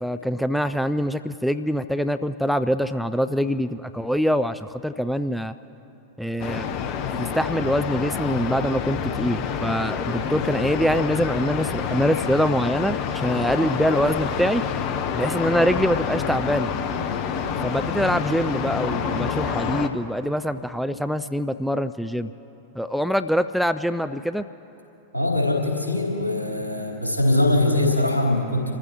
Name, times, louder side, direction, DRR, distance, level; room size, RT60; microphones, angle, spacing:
voice 1, 0.0-5.5 6.2-6.7 7.2-14.6 15.1-16.7 17.6-22.3 22.8-24.5, equal, ahead, 10 dB, 0.4 m, -24 dB
sound 1, 6.4-19.9, left 7 dB, 40° left, 0.9 m, -27 dB
voice 2, 25.1-28.7, left 1 dB, 80° left, -3 dB, 3.5 m, -22 dB
28.5 x 15.0 x 3.0 m, 3.0 s
figure-of-eight pair, 90°, 0 cm